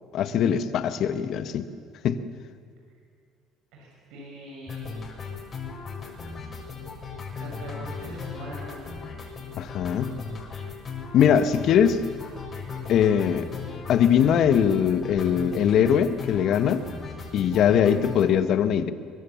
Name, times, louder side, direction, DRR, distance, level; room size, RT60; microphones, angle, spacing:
voice 1, 0.1-1.7 2.0-2.2 9.6-10.2 11.1-12.0 12.9-13.5 13.9-16.8 17.3-18.9, left 8 dB, 60° left, 11 dB, 1.4 m, -21 dB
voice 2, 3.7-4.9 7.4-8.9, right 1 dB, 70° right, -2 dB, 6.5 m, -42 dB
sound 1, 4.7-18.2, left 5 dB, 40° left, 6.7 m, -37 dB
23.5 x 23.0 x 7.2 m, 2.1 s
hypercardioid pair, 70°, 0 cm